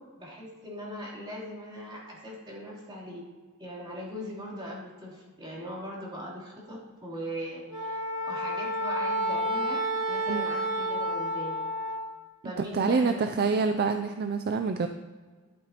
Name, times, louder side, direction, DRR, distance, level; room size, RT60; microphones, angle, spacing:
voice 1, 0.0-3.2 3.6-8.0 8.3-11.6 12.4-13.5, equal, 25° right, -7 dB, 3.4 m, -40 dB
Wind instrument woodwind instrument, 7.7-12.1, equal, 85° right, 2.0 m, -30 dB
voice 2, 12.7-14.9, right 4 dB, 45° right, 7 dB, 0.4 m, -26 dB
12.5 x 12.0 x 2.9 m, 1.4 s
head